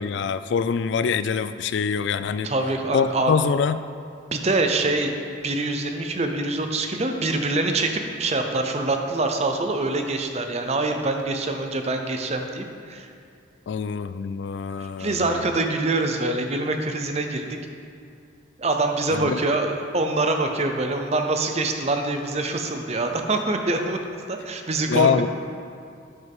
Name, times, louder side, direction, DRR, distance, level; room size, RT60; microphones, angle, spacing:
voice 1, 0.0-2.5 2.9-3.8 13.7-15.3 19.1-19.4 24.9-25.3, left 6 dB, 70° left, 13 dB, 0.3 m, -24 dB
voice 2, 2.4-3.3 4.3-5.1 5.4-13.1 14.8-17.6 18.6-25.3, right 2 dB, 35° right, 4 dB, 0.7 m, -25 dB
11.0 x 7.9 x 3.6 m, 2.3 s
head